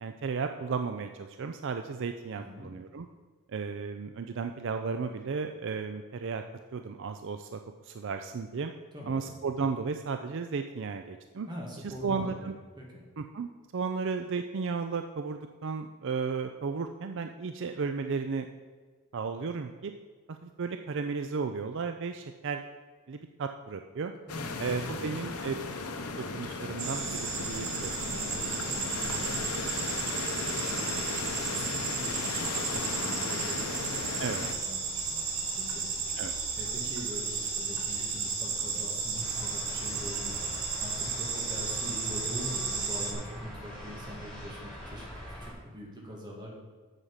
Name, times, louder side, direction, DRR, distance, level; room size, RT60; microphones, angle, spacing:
voice 1, 0.0-3.1 3.5-6.4 6.7-8.7 9.1-11.5 11.8-12.5 13.2-18.5 19.1-19.9 20.3-22.6 23.1-24.1 24.6-25.6 26.2-28.0 34.2-34.4 36.2-36.3, right 5 dB, 55° right, 7 dB, 0.4 m, -34 dB
voice 2, 2.4-2.7 8.9-9.3 11.5-13.0 24.3-25.1 28.1-35.2 35.6-36.3 36.6-46.5, equal, 20° right, -3 dB, 2.3 m, -44 dB
sound 1, 24.3-34.5, left 4 dB, 90° left, 0.9 m, -36 dB
sound 2, 26.8-43.1, right 5 dB, 80° right, 1.6 m, -33 dB
sound 3, 39.2-45.5, equal, 5° left, 3.1 m, -43 dB
8.2 x 7.3 x 5.6 m, 1.4 s
head